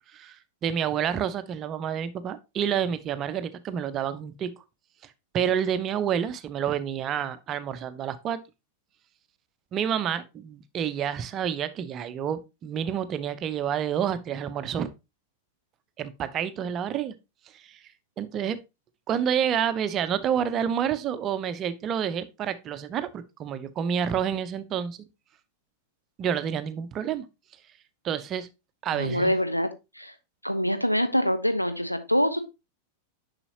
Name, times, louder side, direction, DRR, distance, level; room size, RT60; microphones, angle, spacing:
voice 1, 0.6-4.5 5.3-8.4 9.7-14.9 16.0-17.1 17.5-17.8 18.2-18.6 19.1-25.0 26.2-27.2 28.0-28.5 28.8-29.3, right 8 dB, 30° right, 0.6 m, -29 dB
voice 2, 28.9-29.7 29.9-30.1 30.4-32.4, equal, 90° left, 0.7 m, -25 dB
6.9 x 5.7 x 2.8 m
figure-of-eight pair, 90°, 0 cm